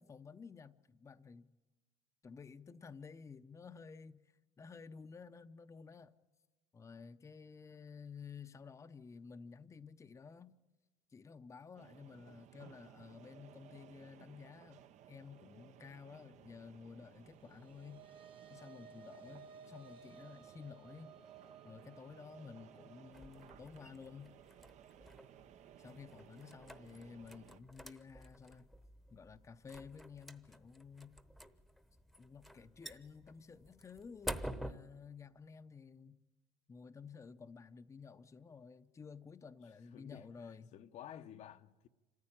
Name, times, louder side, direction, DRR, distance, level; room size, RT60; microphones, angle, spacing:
voice 1, 0.0-1.5 2.2-6.1 6.7-10.6 11.1-14.8 15.1-18.0 18.5-21.1 21.6-24.4 25.8-28.7 29.1-31.2 32.2-36.2 36.7-40.7, left 5 dB, 20° left, 0.7 m, -53 dB
sound 1, 11.8-27.6, right 10 dB, 55° right, 0.8 m, -60 dB
sound 2, 17.2-25.8, right 6 dB, 40° right, 1.3 m, -59 dB
sound 3, 23.1-34.7, equal, ahead, 1.0 m, -50 dB
voice 2, 39.9-41.9, left 10 dB, 55° left, 0.9 m, -53 dB
26.0 x 14.5 x 8.8 m
supercardioid pair, 105°, 14 cm